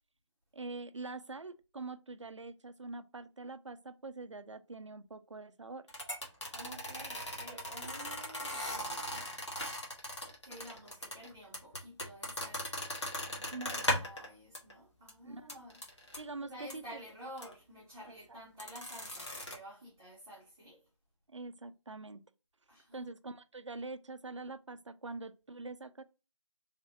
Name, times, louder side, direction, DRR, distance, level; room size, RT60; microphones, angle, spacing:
voice 1, 0.5-5.9 13.5-13.9 15.2-15.6 16.2-17.0 18.1-18.4 21.3-22.2 22.9-26.0, right 3 dB, 65° right, 0.4 m, -44 dB
sound 1, 5.9-14.3 14.5-14.7 15.1-15.2 15.5-16.2 16.7-16.8 17.4-17.5 18.6-19.6, left 1 dB, 60° left, 1.2 m, -38 dB
voice 2, 6.5-9.3 10.4-12.7 13.2-20.8 22.7-23.1, equal, 10° right, 0.8 m, -51 dB
3.3 x 2.5 x 2.8 m
figure-of-eight pair, 160°, 17 cm